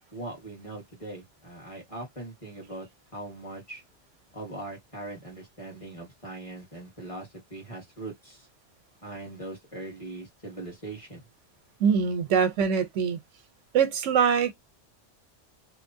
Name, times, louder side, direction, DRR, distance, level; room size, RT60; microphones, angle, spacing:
voice 1, 0.1-2.9 3.1-3.8 4.3-8.5 9.0-11.2, right 2 dB, 30° left, 1.4 m, -40 dB
voice 2, 11.8-13.2 13.7-14.5, right 7 dB, 85° right, 1.0 m, -23 dB
2.9 x 2.0 x 2.6 m
omnidirectional pair, 1.2 m